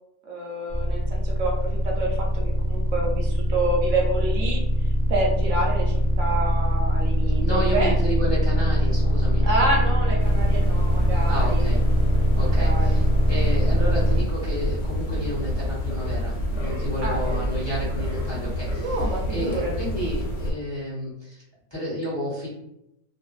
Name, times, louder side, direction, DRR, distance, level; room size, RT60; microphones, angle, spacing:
voice 1, 0.2-4.6 5.1-8.0 9.4-11.7 12.4-13.0 17.0-17.2 18.8-19.7, right 2 dB, 70° right, -1 dB, 0.9 m, -28 dB
sound 1, 0.7-14.2, equal, 5° right, 0.6 m, -22 dB
voice 2, 7.4-9.4 11.3-11.8 12.3-19.0 19.3-21.4 21.7-22.6, equal, 20° left, -9 dB, 0.9 m, -31 dB
sound 2, 10.2-20.5, equal, 65° left, 0.9 m, -29 dB
2.6 x 2.4 x 2.3 m, 0.83 s
omnidirectional pair, 1.4 m